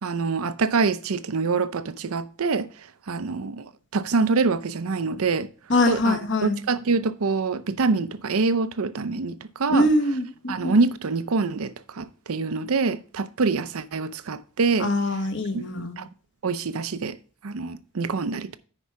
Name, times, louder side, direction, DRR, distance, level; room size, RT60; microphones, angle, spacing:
voice 1, 0.0-2.7 3.1-5.5 5.9-9.9 10.5-14.9 15.5-15.6 16.0-16.1 16.4-17.2 17.4-18.6, right 4 dB, 80° right, 0.6 m, -25 dB
voice 2, 5.7-6.6 9.7-10.8 14.8-16.0, left 1 dB, 55° left, 1.4 m, -23 dB
9.8 x 4.9 x 4.6 m
head